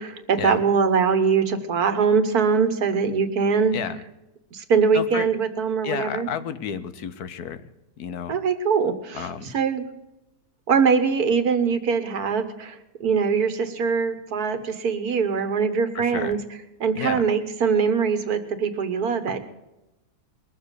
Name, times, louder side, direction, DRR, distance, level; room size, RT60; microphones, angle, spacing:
voice 1, 0.0-3.8 4.5-6.3 8.3-9.3 9.5-9.8 10.7-12.8 13.0-16.4 16.8-19.4, right 5 dB, 70° right, 9 dB, 1.8 m, -22 dB
voice 2, 4.9-5.3 5.8-7.6 8.0-8.3 9.1-9.5 15.9-16.4 16.9-17.2, left 8 dB, 75° left, 12 dB, 1.4 m, -31 dB
21.5 x 7.3 x 8.2 m, 0.95 s
omnidirectional pair, 1.7 m